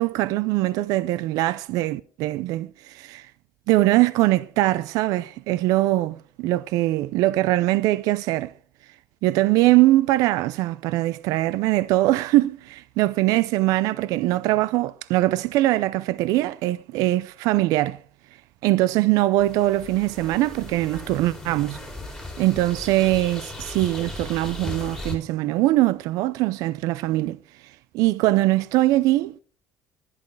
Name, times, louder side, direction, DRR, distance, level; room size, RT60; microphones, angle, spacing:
voice 1, 0.0-3.3 3.7-8.5 9.2-18.0 18.6-21.8 22.4-27.4 27.9-29.4, right 17 dB, 70° right, 0.4 m, -22 dB
sound 1, 19.4-25.2, left 2 dB, 5° left, 3.0 m, -37 dB
11.0 x 10.5 x 4.7 m
cardioid pair, 165°, 6 cm